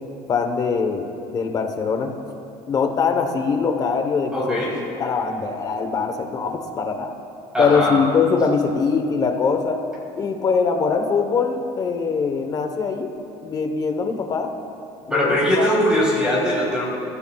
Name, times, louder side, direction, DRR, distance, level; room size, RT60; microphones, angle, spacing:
voice 1, 0.3-1.1 1.3-2.1 2.7-7.1 7.6-9.8 10.2-13.1 13.4-14.5 15.1-15.7, left 5 dB, 30° left, 6 dB, 1.0 m, -22 dB
voice 2, 4.3-4.7 7.5-8.0 15.1-16.9, equal, 5° right, -7 dB, 3.6 m, -20 dB
22.5 x 15.0 x 2.3 m, 2.9 s
cardioid pair, 165°, 12 cm